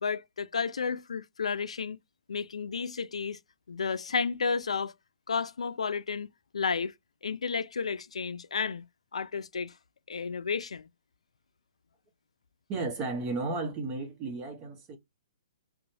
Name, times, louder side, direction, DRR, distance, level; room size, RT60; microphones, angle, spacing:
voice 1, 0.0-2.0 2.3-3.4 3.7-4.9 5.3-6.3 6.5-6.9 7.2-8.8 9.1-9.7 10.1-10.9, left 5 dB, 85° left, 0.4 m, -32 dB
voice 2, 12.7-15.0, right 3 dB, 25° right, 0.9 m, -33 dB
2.8 x 2.2 x 2.6 m
hypercardioid pair, 140°, 3 cm